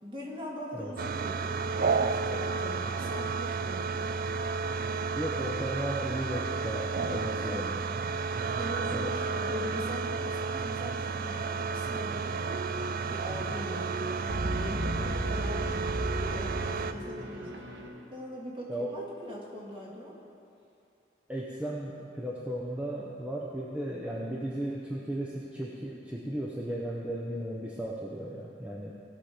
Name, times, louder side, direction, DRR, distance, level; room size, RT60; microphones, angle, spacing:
voice 1, 0.0-4.2 7.4-7.7 8.6-12.5 13.1-14.2 14.6-17.6 18.1-20.2, equal, 30° right, -4 dB, 1.9 m, -41 dB
sound 1, 1.0-16.9, right 4 dB, 50° right, 0.4 m, -32 dB
voice 2, 5.1-7.8 8.9-9.1 18.7-19.0 21.3-28.9, right 1 dB, 5° right, -4 dB, 0.7 m, -35 dB
sound 2, 12.5-17.9, right 1 dB, 80° right, 1.3 m, -36 dB
17.0 x 6.0 x 5.0 m, 2.7 s
head